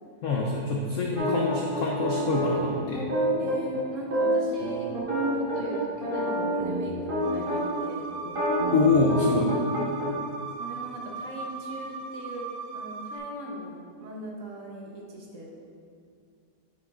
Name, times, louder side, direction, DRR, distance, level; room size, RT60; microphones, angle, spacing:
voice 1, 0.2-3.0 8.7-9.5, left 3 dB, 70° left, -1 dB, 0.8 m, -25 dB
sound 1, 1.2-7.8 8.2-10.1, equal, 30° right, 1.4 m, -28 dB
voice 2, 3.4-4.9 5.3-8.1 10.6-12.5 12.7-15.5, right 1 dB, 50° right, -2 dB, 1.2 m, -39 dB
sound 2, 7.2-13.2, right 5 dB, 70° right, 1.2 m, -38 dB
8.8 x 6.3 x 2.4 m, 2.4 s
omnidirectional pair, 1.9 m